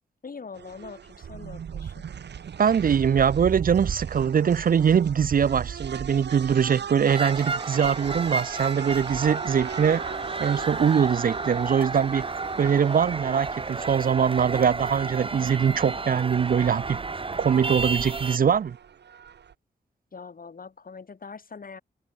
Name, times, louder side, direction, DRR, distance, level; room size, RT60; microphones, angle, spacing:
voice 1, 0.2-2.1 20.1-21.8, left 5 dB, 55° left, 5.4 m, -42 dB
sound 1, 0.6-19.5, right 8 dB, 75° right, 3.6 m, -39 dB
voice 2, 2.6-10.0 10.4-12.3 12.6-17.0 17.4-18.8, right 7 dB, 55° right, 0.6 m, -22 dB
sound 2, 7.1-18.4, right 3 dB, 30° right, 1.2 m, -32 dB
open air
cardioid pair, 50°, 18 cm